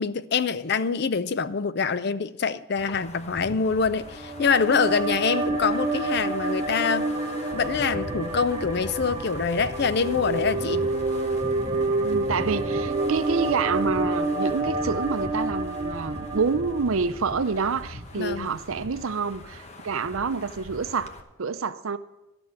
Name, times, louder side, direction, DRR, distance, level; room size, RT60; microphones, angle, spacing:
voice 1, 0.0-7.1 7.5-10.9 18.2-18.5, left 5 dB, 50° left, 0.5 m, -25 dB
Wind, 2.7-21.2, left 1 dB, 30° left, 1.0 m, -40 dB
sound 1, 4.1-17.5, right 2 dB, 20° right, 1.6 m, -28 dB
voice 2, 12.0-21.1 21.4-22.0, right 5 dB, 75° right, 0.6 m, -27 dB
13.5 x 6.1 x 9.5 m
head